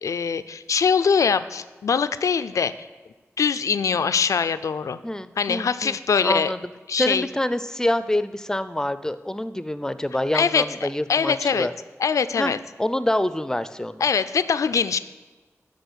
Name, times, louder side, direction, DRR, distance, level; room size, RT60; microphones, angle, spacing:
voice 1, 0.0-2.9 3.4-5.0 5.4-6.5 6.9-7.3 10.3-11.7 12.0-12.6 14.0-15.0, left 6 dB, 80° left, 13 dB, 0.3 m, -23 dB
voice 2, 5.0-5.9 6.2-6.6 7.0-11.7 12.4-12.5 12.8-14.0, left 1 dB, 10° left, 13 dB, 0.4 m, -26 dB
10.5 x 3.8 x 6.2 m, 1.2 s
cardioid pair, 50°, 5 cm